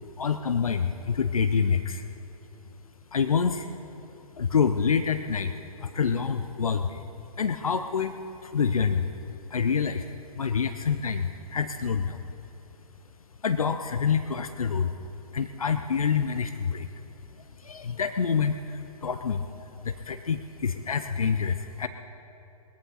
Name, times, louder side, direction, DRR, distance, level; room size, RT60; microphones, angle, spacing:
voice 1, 0.2-2.0 3.1-3.7 4.4-5.5 5.8-7.0 7.4-8.2 8.4-9.1 9.5-10.0 10.4-12.2 13.4-14.9 15.3-16.9 17.6-19.5 19.8-21.9, left 6 dB, 65° left, 9 dB, 0.7 m, -27 dB
21.0 x 14.5 x 4.1 m, 3.0 s
figure-of-eight pair, 125°, 19 cm